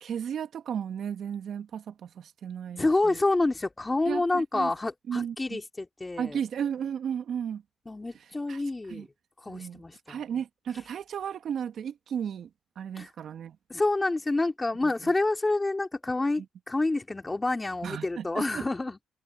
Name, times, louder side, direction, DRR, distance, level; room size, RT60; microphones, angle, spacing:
voice 1, 0.0-3.2 4.1-4.7 5.1-5.6 6.2-7.6 8.1-8.6 8.9-9.1 9.5-9.8 10.1-12.5 12.8-13.6 14.8-15.1 16.4-16.5 17.8-18.7, right 8 dB, 65° right, 2.1 m, -34 dB
voice 2, 2.8-6.4 7.9-9.0 9.4-10.2 13.0-13.1 13.7-19.0, left 2 dB, 20° left, 2.8 m, -28 dB
supercardioid pair, 60°, 0 cm